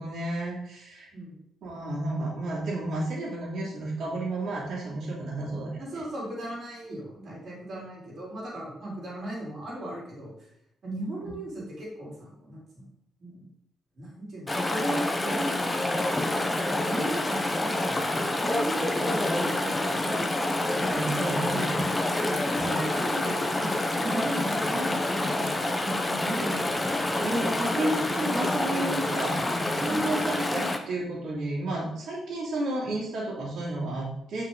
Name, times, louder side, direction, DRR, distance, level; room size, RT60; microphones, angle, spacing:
voice 1, 0.0-1.1 1.6-5.8 11.2-11.3 20.8-21.8 22.2-22.3 22.6-23.1 27.2-34.4, right 1 dB, 60° right, -5 dB, 3.1 m, -32 dB
voice 2, 5.8-10.3 10.8-12.8 13.2-13.5 14.0-20.3 22.2-27.5 29.8-30.0, right 1 dB, 40° right, -6 dB, 3.6 m, -37 dB
Chatter / Stream, 14.5-30.8, left 1 dB, 10° left, 0.7 m, -27 dB
9.0 x 5.7 x 3.9 m, 0.80 s
cardioid pair, 175°, 0 cm